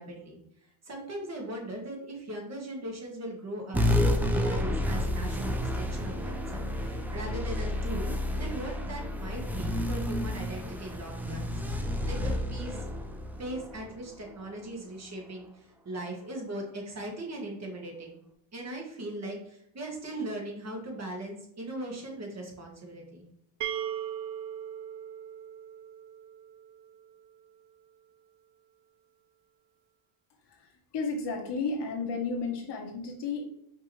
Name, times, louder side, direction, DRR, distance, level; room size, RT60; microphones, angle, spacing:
voice 1, 0.0-12.9 13.4-18.2 18.5-23.2, right 1 dB, 30° right, 0 dB, 1.5 m, -39 dB
sound 1, 3.7-14.6, left 1 dB, 5° right, 0.3 m, -30 dB
sound 2, 23.6-27.3, right 10 dB, 60° right, 0.5 m, -39 dB
voice 2, 30.4-33.5, left 4 dB, 55° left, 1 dB, 1.2 m, -33 dB
5.3 x 2.9 x 3.2 m, 0.74 s
cardioid pair, 100°, 48 cm